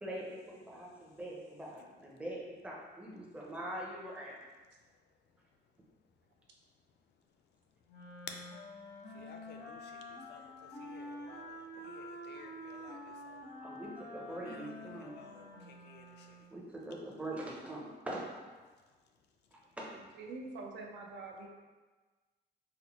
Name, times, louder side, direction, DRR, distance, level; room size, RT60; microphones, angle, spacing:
voice 1, 0.0-4.4 13.6-15.3 16.5-18.4 19.5-19.9, right 1 dB, 5° right, -4 dB, 0.5 m, -43 dB
Wind instrument woodwind instrument, 7.9-16.5, left 1 dB, 90° left, 1.0 m, -48 dB
voice 2, 9.1-13.5 14.3-16.5, left 6 dB, 70° left, 4 dB, 0.4 m, -56 dB
voice 3, 20.1-21.5, right 3 dB, 80° right, 0 dB, 0.6 m, -45 dB
4.0 x 2.1 x 2.9 m, 1.3 s
cardioid pair, 155°, 18 cm